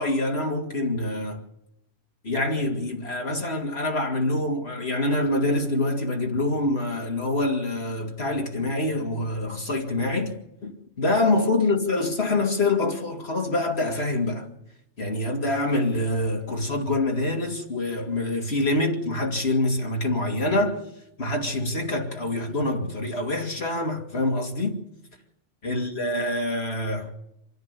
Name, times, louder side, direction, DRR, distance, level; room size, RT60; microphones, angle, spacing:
voice 1, 0.0-1.4 2.2-10.4 10.6-14.5 15.0-20.8 21.2-24.8 25.6-27.1, left 2 dB, 60° left, 2.9 m, -25 dB
26.5 x 10.5 x 9.8 m
omnidirectional pair, 1.2 m